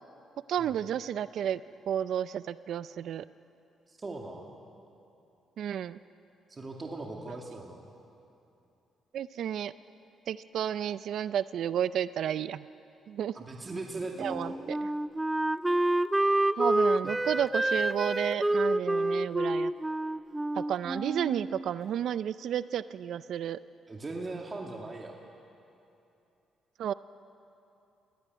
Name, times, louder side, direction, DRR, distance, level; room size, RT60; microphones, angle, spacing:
voice 1, 0.5-1.6 1.9-3.2 5.6-6.0 7.3-7.4 9.1-9.7 10.3-12.6 13.1-13.4 14.2-14.9 16.6-19.7 20.6-23.6 26.8-26.9, right 9 dB, 70° right, 15 dB, 0.4 m, -32 dB
voice 2, 3.9-4.5 6.5-7.9 13.3-14.6 17.0-17.1 23.9-25.1, right 2 dB, 30° right, 0 dB, 2.2 m, -39 dB
Wind instrument woodwind instrument, 14.2-21.7, right 1 dB, 10° right, 0.4 m, -28 dB
20.5 x 16.5 x 9.4 m, 2.8 s
cardioid pair, 90°, 0 cm